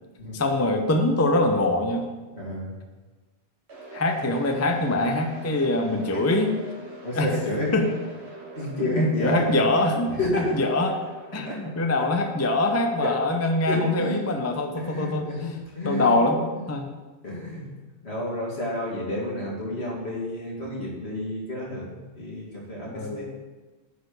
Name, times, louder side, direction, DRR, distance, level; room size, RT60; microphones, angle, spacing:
voice 1, 0.3-2.1 3.9-6.5 7.1-7.3 7.7-7.9 8.8-10.2 10.5-11.0 11.3-15.5 15.8-16.9 22.9-23.2, left 2 dB, 20° left, 4 dB, 0.6 m, -24 dB
voice 2, 2.3-2.8 6.1-6.2 7.0-7.7 8.6-9.5 10.1-10.5 11.5-11.7 13.0-13.2 13.7-14.4 14.8-16.2 17.2-17.7 18.0-23.3, left 1 dB, 70° left, -4 dB, 2.6 m, -30 dB
sound 1, 3.7-13.7, right 2 dB, 70° right, 1.4 m, -44 dB
9.5 x 4.3 x 6.8 m, 1.2 s
omnidirectional pair, 1.1 m